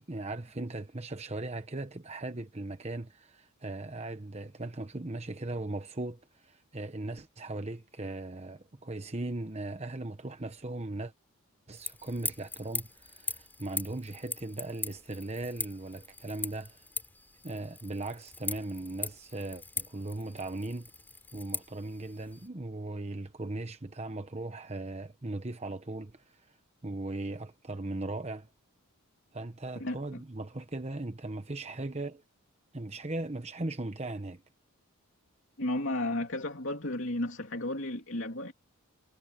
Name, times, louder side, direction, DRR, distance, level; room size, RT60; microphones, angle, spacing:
voice 1, 0.0-11.1 11.7-16.9 17.4-20.9 21.3-26.6 26.8-28.5 29.3-32.2 32.7-34.4, right 2 dB, 30° right, 1.0 m, -38 dB
sound 1, 11.7-22.5, left 3 dB, 10° left, 3.9 m, -41 dB
voice 2, 29.8-30.2 35.6-38.5, left 1 dB, 55° left, 3.2 m, -33 dB
head